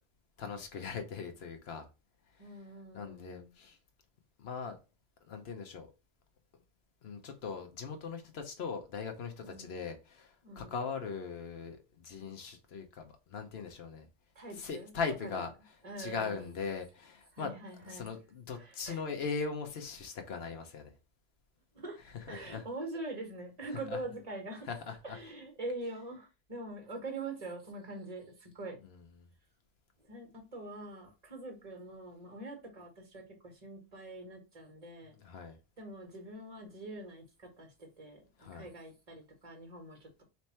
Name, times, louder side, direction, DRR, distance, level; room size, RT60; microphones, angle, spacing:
voice 1, 0.4-1.9 2.9-3.8 4.4-4.8 5.2-5.9 7.0-14.1 14.6-15.5 16.0-17.5 17.8-20.9 22.3-22.7 23.9-24.0 24.7-25.2 28.8-29.0 35.2-35.6 38.4-38.6, left 5 dB, 70° left, 1.1 m, -40 dB
voice 2, 2.4-3.5 9.4-9.8 10.4-10.8 14.3-14.9 15.2-15.4 15.8-16.6 17.3-18.1 18.5-19.0 21.7-22.0 22.3-24.7 25.0-28.8 30.1-35.2 35.8-40.2, right 2 dB, 35° right, 1.6 m, -44 dB
3.4 x 3.0 x 4.3 m
omnidirectional pair, 1.1 m